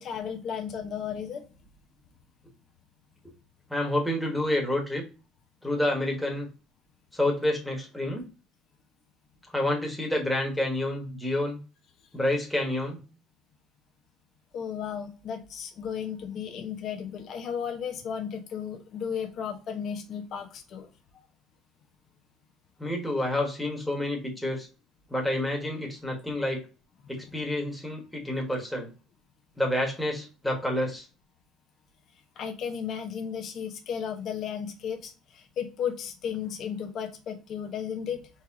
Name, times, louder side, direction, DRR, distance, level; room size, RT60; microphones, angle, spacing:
voice 1, 0.0-1.4 14.5-21.2 32.4-38.3, left 7 dB, 50° left, 4 dB, 1.0 m, -34 dB
voice 2, 3.7-5.0 5.6-6.5 7.1-8.2 9.5-11.6 12.1-13.0 22.8-24.7 25.1-26.6 27.1-28.9 29.6-31.0, left 1 dB, 5° left, -1 dB, 1.4 m, -28 dB
4.3 x 3.3 x 3.6 m, 0.32 s
cardioid pair, 135°, 0 cm